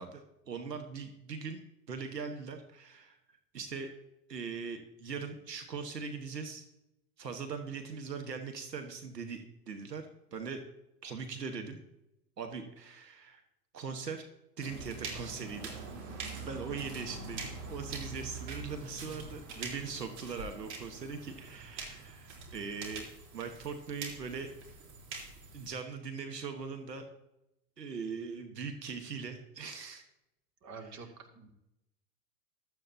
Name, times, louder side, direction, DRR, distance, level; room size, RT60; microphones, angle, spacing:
voice 1, 0.0-1.6 1.9-3.2 3.5-3.9 4.3-6.7 7.2-10.0 10.3-10.6 11.0-11.8 12.4-13.4 13.7-14.3 14.6-15.8 16.4-24.5 25.5-27.0 27.8-30.0, right 5 dB, 85° right, 6 dB, 1.4 m, -40 dB
sound 1, 14.6-25.7, right 3 dB, 55° right, 3.8 m, -44 dB
voice 2, 30.6-31.5, right 4 dB, 35° right, 4 dB, 2.4 m, -47 dB
15.0 x 12.5 x 2.8 m, 0.86 s
hypercardioid pair, 90°, 48 cm